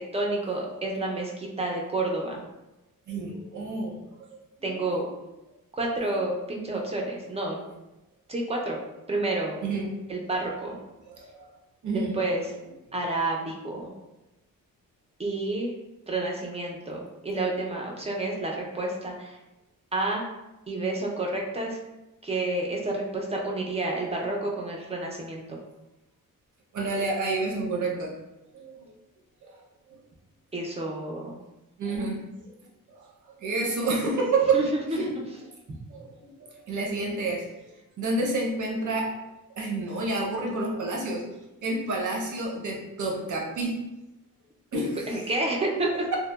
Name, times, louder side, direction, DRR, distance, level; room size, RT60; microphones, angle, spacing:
voice 1, 0.1-2.4 4.6-5.0 5.8-7.6 8.3-8.8 9.1-9.6 10.1-10.8 11.9-12.4 12.9-13.9 15.2-15.7 16.1-19.4 19.9-20.2 20.7-21.8 22.2-25.6 30.5-31.4 34.5-35.0 45.1-46.1, right 2 dB, 20° right, -1 dB, 0.4 m, -29 dB
voice 2, 3.1-4.7 9.6-9.9 11.2-11.4 11.8-12.1 26.7-28.1 28.5-28.9 29.4-29.6 29.9-30.0 31.8-32.5 33.0-33.1 33.4-34.6 34.9-35.1 35.9-36.1 36.7-37.7 38.0-39.1 39.5-41.2 41.6-43.8 44.7-45.3, right 3 dB, 60° right, -1 dB, 0.7 m, -29 dB
2.9 x 2.0 x 2.2 m, 1.0 s
wide cardioid pair, 125°, 35 cm